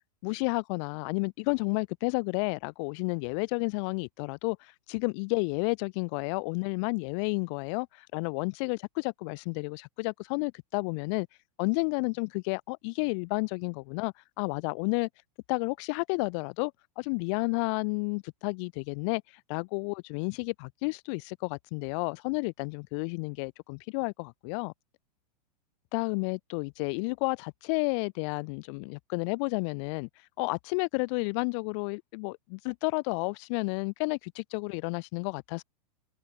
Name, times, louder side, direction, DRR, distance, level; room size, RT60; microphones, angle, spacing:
voice 1, 0.2-4.6 4.9-11.3 11.6-15.1 15.5-19.2 19.5-24.7 25.9-30.1 30.4-35.6, left 33 dB, 45° left, 2.7 m, -31 dB
figure-of-eight pair, 100°, 21 cm